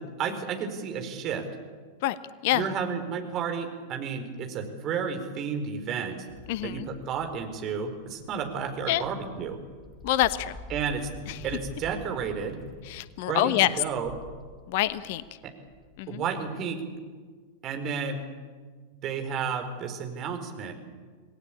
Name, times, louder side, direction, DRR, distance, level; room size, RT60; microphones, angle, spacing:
voice 1, 0.2-1.4 2.5-6.2 6.6-9.6 10.7-11.1 11.4-12.6 13.3-14.1 16.1-16.8 17.6-18.2 19.0-20.7, right 6 dB, 35° right, 5 dB, 4.5 m, -32 dB
sound 1, 6.3-16.5, left 2 dB, 20° left, 4.5 m, -47 dB
voice 2, 6.5-6.9 8.9-9.0 10.0-10.6 11.3-11.4 12.9-13.7 14.7-15.2 16.0-16.2, left 14 dB, 50° left, 15 dB, 1.1 m, -26 dB
28.0 x 19.5 x 8.6 m, 1.5 s
figure-of-eight pair, 90°, 0 cm